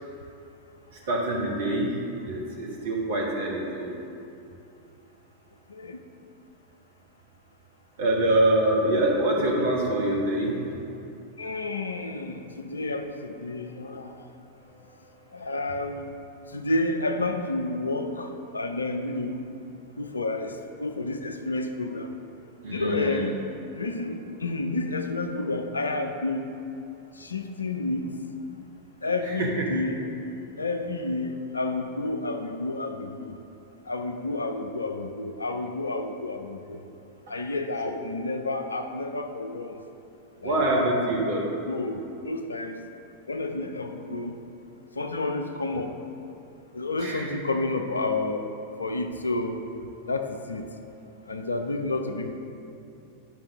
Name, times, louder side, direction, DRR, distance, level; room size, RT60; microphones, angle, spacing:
voice 1, 1.1-1.9 2.3-3.9 8.0-10.5 22.6-23.2 29.4-29.6 37.8-38.0 40.4-41.4 47.0-47.3, right 1 dB, 55° right, -3 dB, 1.2 m, -25 dB
voice 2, 11.4-14.1 15.3-16.1 16.5-19.5 20.0-22.1 22.6-23.4 23.7-26.5 27.2-28.1 29.0-30.1 30.6-33.4 33.9-36.8 37.3-39.8 40.4-40.6 41.7-42.8 43.3-44.4 44.9-46.0 46.7-48.5 48.8-49.6 50.1-50.7 51.3-52.3, left 2 dB, 75° left, 6 dB, 0.5 m, -30 dB
9.9 x 5.6 x 3.5 m, 2.7 s
figure-of-eight pair, 90°, 0 cm